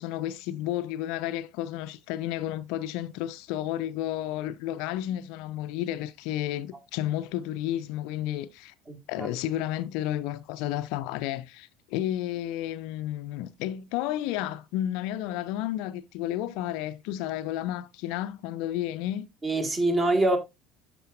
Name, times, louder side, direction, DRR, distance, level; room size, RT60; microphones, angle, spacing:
voice 1, 0.0-8.7 9.1-19.3, left 13 dB, 60° left, 0.4 m, -32 dB
voice 2, 8.9-9.3 19.4-20.4, right 2 dB, 25° right, 1.7 m, -25 dB
12.0 x 4.8 x 2.4 m
figure-of-eight pair, 60°, 0 cm